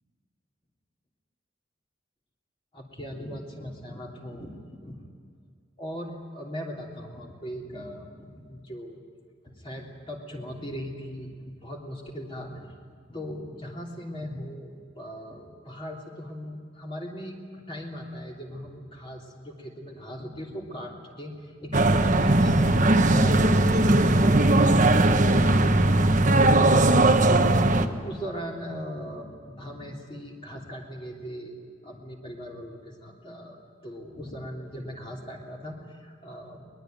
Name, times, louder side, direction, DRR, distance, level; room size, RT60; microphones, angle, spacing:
voice 1, 2.7-5.0 5.8-9.0 9.4-12.7 13.1-25.3 27.7-33.6 33.8-36.6, equal, 25° left, -1 dB, 3.3 m, -39 dB
sound 1, 21.7-27.9, right 2 dB, 40° right, 1.2 m, -19 dB
22.5 x 21.0 x 9.2 m, 2.1 s
head